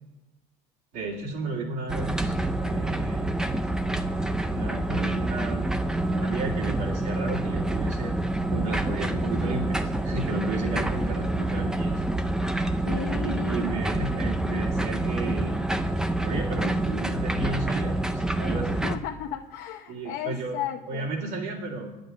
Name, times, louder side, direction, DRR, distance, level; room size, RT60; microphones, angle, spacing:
voice 1, 0.9-2.4 2.6-3.2 4.5-5.6 6.1-8.1 8.5-11.9 13.2-15.5 16.2-18.8 19.9-20.6 20.8-22.0, right 3 dB, 70° right, -5 dB, 2.5 m, -33 dB
sound 1, 1.9-19.0, right 1 dB, 5° right, 0.5 m, -27 dB
voice 2, 12.9-13.7 18.8-21.1, left 10 dB, 60° left, 2 dB, 0.9 m, -34 dB
10.5 x 6.8 x 9.0 m, 1.0 s
cardioid pair, 165°, 16 cm